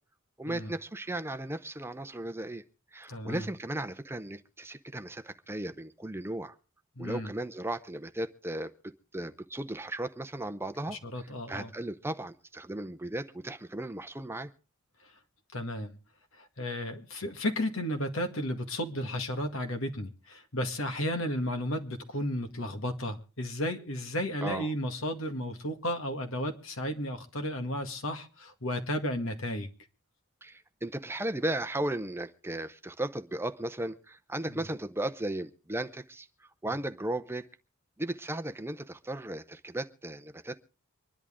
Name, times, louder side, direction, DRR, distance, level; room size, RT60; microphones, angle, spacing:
voice 1, 0.4-2.6 2.9-6.5 7.0-14.5 24.4-24.7 30.4-37.5 38.0-40.6, right 1 dB, 10° right, 0.6 m, -36 dB
voice 2, 3.1-3.5 7.0-7.3 10.9-11.7 15.5-15.9 16.4-29.7, left 1 dB, 70° left, 1.9 m, -33 dB
25.0 x 11.0 x 3.7 m
head